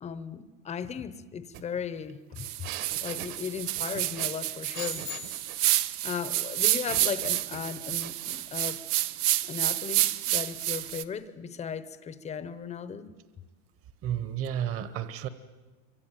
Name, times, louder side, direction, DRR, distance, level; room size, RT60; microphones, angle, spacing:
voice 1, 0.0-2.7 3.0-5.1 6.0-8.8 9.4-13.1, left 7 dB, 15° left, 0.8 m, -36 dB
sound 1, 1.5-1.6 1.9-5.7 6.9-8.4, right 12 dB, 50° right, 1.6 m, -43 dB
sound 2, 2.4-11.0, right 15 dB, 90° right, 1.2 m, -29 dB
sound 3, 4.7-5.8, left 18 dB, 75° left, 1.1 m, -41 dB
voice 2, 14.0-15.3, right 10 dB, 30° right, 1.1 m, -31 dB
27.0 x 24.5 x 9.1 m
supercardioid pair, 160°, 44 cm